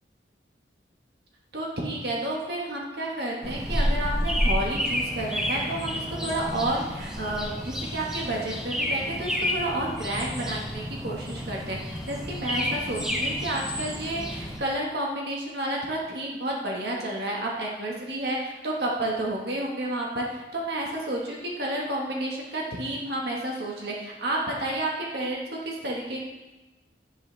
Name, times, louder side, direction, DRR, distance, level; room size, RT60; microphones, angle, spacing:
voice 1, 1.5-26.2, right 1 dB, 60° right, -2 dB, 1.8 m, -31 dB
sound 1, 3.4-14.6, equal, 5° right, 1.3 m, -30 dB
16.0 x 8.0 x 3.5 m, 1.1 s
head